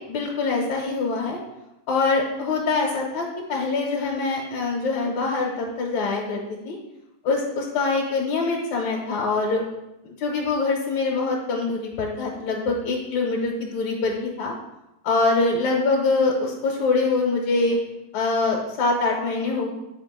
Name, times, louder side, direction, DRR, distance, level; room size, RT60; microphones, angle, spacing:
voice 1, 0.1-1.4 1.9-6.8 7.2-9.6 10.0-14.5 15.0-17.8 18.1-19.7, left 3 dB, 70° left, -1 dB, 2.1 m, -24 dB
8.6 x 4.9 x 3.6 m, 0.91 s
omnidirectional pair, 3.5 m